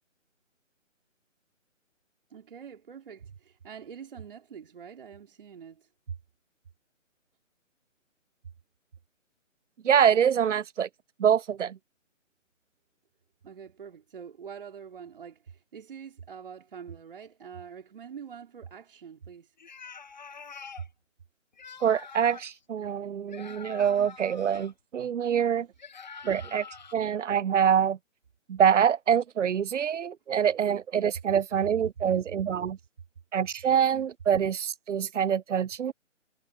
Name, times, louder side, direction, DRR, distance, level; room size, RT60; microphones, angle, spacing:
voice 1, 2.3-6.2 13.4-19.5 20.8-20.9 32.1-32.2, right 7 dB, 45° right, 3.7 m, -44 dB
voice 2, 9.8-10.9 11.2-11.8 21.8-25.7 26.2-26.6 26.9-28.0 28.5-32.8 33.3-35.9, right 8 dB, 65° right, 0.6 m, -25 dB
sound 1, 19.6-20.9 21.5-22.6 23.3-24.7 25.8-26.9, left 5 dB, 35° left, 0.8 m, -45 dB
hypercardioid pair, 165°, 39 cm